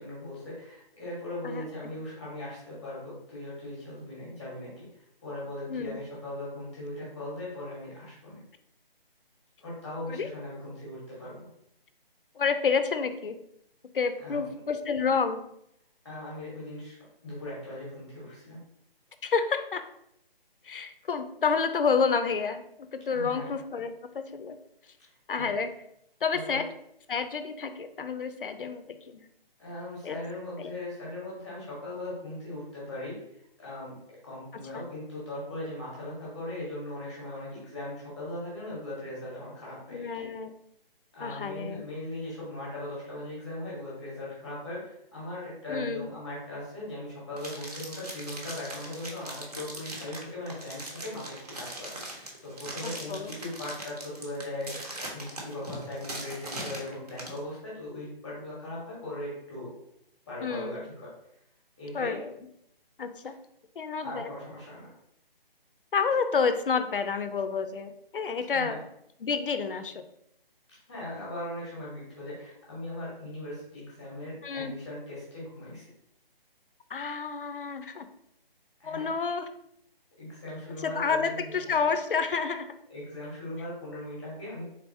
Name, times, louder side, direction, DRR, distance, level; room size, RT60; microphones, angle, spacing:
voice 1, 0.0-8.4 9.6-11.5 14.2-14.4 16.0-17.0 17.2-18.6 23.1-23.5 25.4-25.5 26.3-26.6 29.6-33.2 33.6-33.9 34.2-40.2 41.1-54.7 55.1-59.7 60.3-61.1 61.8-62.2 64.0-64.9 68.5-68.7 70.9-75.9 78.8-79.1 80.2-81.7 82.9-84.6, left 1 dB, ahead, -8 dB, 1.0 m, -39 dB
voice 2, 1.4-1.9 5.7-6.0 10.1-10.3 12.4-13.4 13.9-15.4 19.2-19.8 20.6-24.6 25.3-25.7 26.2-26.7 27.1-29.2 30.0-30.2 30.6-30.7 34.7-34.8 39.9-40.5 41.2-41.9 45.7-46.1 52.8-53.4 60.4-60.8 61.9-62.3 63.0-63.3 63.8-64.3 65.9-68.8 69.2-70.0 74.4-74.8 76.9-78.1 78.8-79.5 80.8-82.7, left 5 dB, 65° left, 9 dB, 0.5 m, -29 dB
sound 1, 47.4-57.4, right 1 dB, 40° right, 0.9 m, -40 dB
3.9 x 3.4 x 2.7 m, 0.75 s
hypercardioid pair, 170°, 30 cm